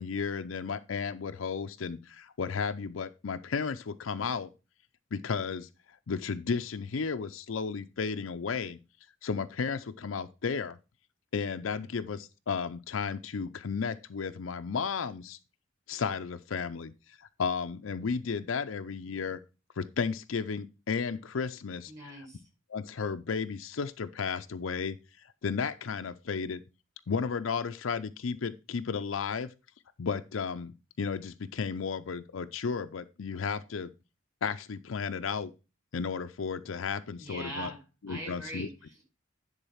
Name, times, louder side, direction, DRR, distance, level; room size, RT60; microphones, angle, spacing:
voice 1, 0.0-4.5 5.1-5.7 6.1-8.8 9.2-10.8 11.3-15.4 15.9-16.9 17.2-19.4 19.8-21.9 22.7-25.0 25.4-26.6 27.1-29.5 30.0-33.9 34.4-35.5 35.9-37.7 38.0-38.7, left 5 dB, 85° left, 0.5 m, -33 dB
voice 2, 21.9-22.4 37.2-39.0, right 1 dB, 15° right, 4.8 m, -42 dB
10.0 x 4.0 x 5.6 m
head